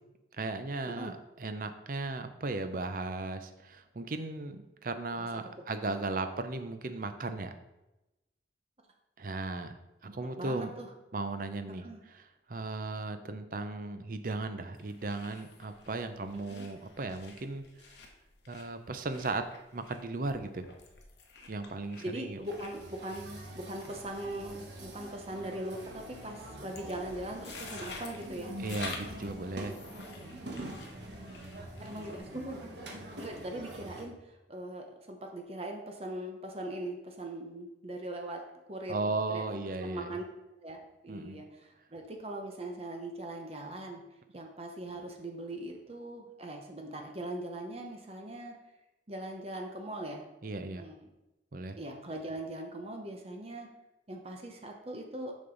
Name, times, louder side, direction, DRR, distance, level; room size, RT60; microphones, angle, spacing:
voice 1, 0.3-7.6 9.2-10.7 11.1-17.6 18.5-20.7 21.5-22.4 28.6-29.8 38.9-40.2 41.1-41.4 50.4-50.8 51.5-51.8, right 3 dB, 50° right, 9 dB, 0.6 m, -36 dB
voice 2, 10.4-10.9 11.7-12.0 16.3-16.7 22.0-28.5 31.8-32.7 33.2-38.4 38.7-39.0 39.3-39.4 39.8-40.2 40.6-44.0 44.3-48.6 49.1-50.3 50.7-51.0 51.8-53.7 54.1-55.3, right 1 dB, 35° right, 2 dB, 0.9 m, -40 dB
sound 1, 14.7-32.2, left 4 dB, 75° left, 1.0 m, -50 dB
sound 2, 22.4-34.0, right 1 dB, 70° right, 1.3 m, -45 dB
6.8 x 5.3 x 3.9 m, 0.97 s
head